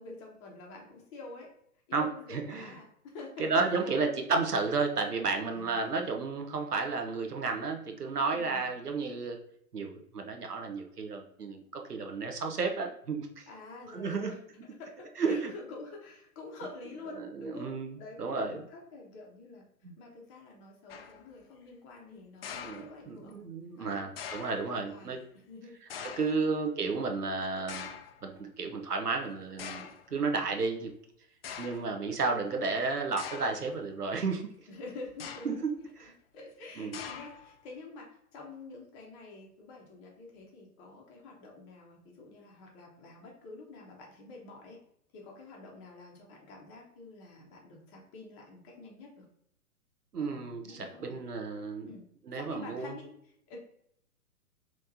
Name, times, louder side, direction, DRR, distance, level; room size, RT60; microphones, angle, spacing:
voice 1, 0.0-1.5 1.9-4.0 5.5-6.1 8.3-8.7 13.5-14.4 14.8-19.6 20.0-23.4 23.8-24.0 24.7-25.2 25.5-25.8 26.3-26.5 34.7-35.5 36.3-44.8 45.1-49.2 50.2-51.2 51.9-52.0 52.3-53.1 53.5-53.6, left 3 dB, 25° left, -1 dB, 1.1 m, -48 dB
voice 2, 1.9-2.8 3.4-9.4 9.7-13.5 13.9-14.3 15.2-15.5 17.1-18.6 19.8-19.9 22.5-25.2 26.2-27.9 28.2-30.9 31.6-34.5 35.4-35.6 36.0-36.1 36.8-37.0 50.1-51.9 52.3-53.0, right 4 dB, 85° right, 4 dB, 0.9 m, -32 dB
sound 1, 20.9-21.3 22.4-23.3 24.2-24.7 25.9-26.5 27.7-28.2 29.0-29.1 29.6-30.1 30.9-31.0 31.4-31.9 33.2-33.7 35.1-35.7 36.9-37.6, left 7 dB, 45° left, 0.4 m, -43 dB
5.0 x 3.2 x 2.7 m, 0.72 s
figure-of-eight pair, 115°, 45 cm